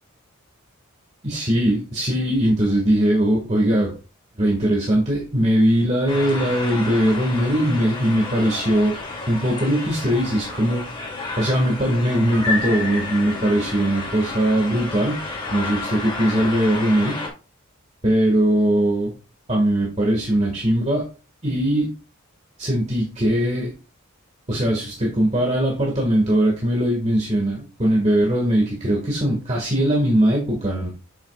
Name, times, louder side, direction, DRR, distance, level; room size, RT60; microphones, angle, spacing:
voice 1, 1.2-3.9 4.4-8.9 9.3-10.9 11.4-15.2 15.5-17.2 18.0-19.1 19.5-21.1 21.4-21.9 22.6-23.7 24.5-30.9, right 1 dB, 30° right, -1 dB, 1.8 m, -20 dB
sound 1, 6.1-17.3, left 3 dB, 25° left, 2.6 m, -31 dB
8.2 x 7.5 x 2.4 m, 0.33 s
head